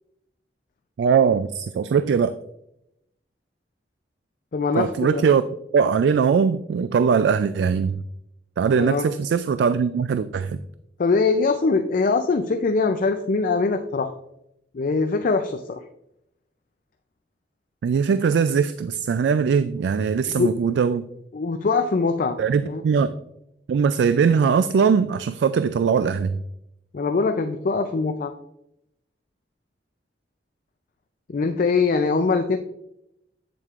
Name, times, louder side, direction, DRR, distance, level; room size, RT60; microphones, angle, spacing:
voice 1, 1.0-2.4 4.8-5.4 5.7-8.0 8.6-10.6 17.8-21.1 22.4-23.1 23.7-26.4, right 6 dB, 75° right, 13 dB, 0.3 m, -21 dB
voice 2, 4.5-5.2 8.8-9.0 11.0-14.1 14.7-15.8 20.3-20.5 21.3-22.4 22.7-22.8 26.9-28.3 31.3-32.6, left 4 dB, 50° left, 7 dB, 0.4 m, -22 dB
8.2 x 7.5 x 2.4 m, 0.81 s
head